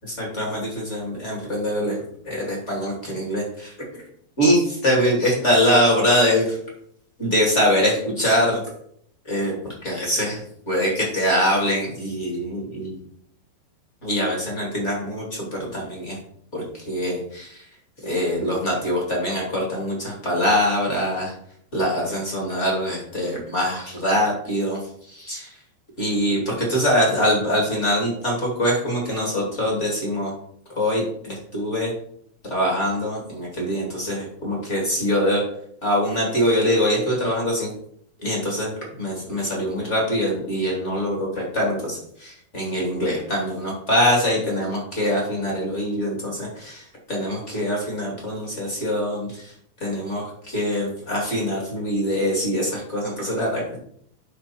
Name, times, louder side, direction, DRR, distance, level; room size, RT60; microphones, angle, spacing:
voice 1, 0.2-2.0 2.2-3.7 4.4-6.5 7.2-8.6 9.3-9.5 9.8-10.4 10.7-13.0 14.0-16.2 16.5-17.5 18.0-21.3 21.7-24.8 25.1-25.5 26.0-30.3 30.8-31.9 32.5-35.4 35.8-37.7 38.2-38.7 39.0-46.8 47.1-49.3 49.8-53.8, equal, 20° left, -2 dB, 2.6 m, -23 dB
8.3 x 6.1 x 4.5 m, 0.67 s
omnidirectional pair, 4.7 m